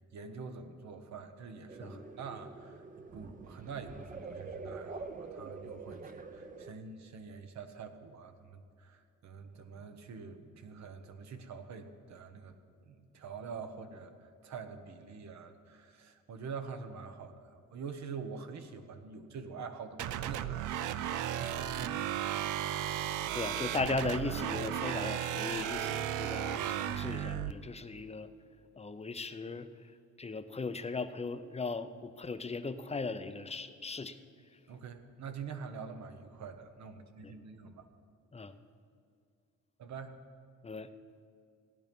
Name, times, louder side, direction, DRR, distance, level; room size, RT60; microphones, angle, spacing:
voice 1, 0.1-12.6 12.8-20.5 21.2-22.4 34.7-37.9 39.8-40.2, right 5 dB, 65° right, 8 dB, 1.2 m, -46 dB
sound 1, 1.7-6.7, right 4 dB, 25° right, 0.9 m, -46 dB
sound 2, 20.0-27.5, right 11 dB, 85° right, 0.6 m, -35 dB
voice 2, 23.3-28.3 28.7-29.7 30.2-34.2 37.2-37.3 38.3-38.5 40.6-40.9, left 3 dB, 20° left, 10 dB, 0.7 m, -38 dB
16.0 x 10.5 x 5.3 m, 2.3 s
cardioid pair, 90°, 30 cm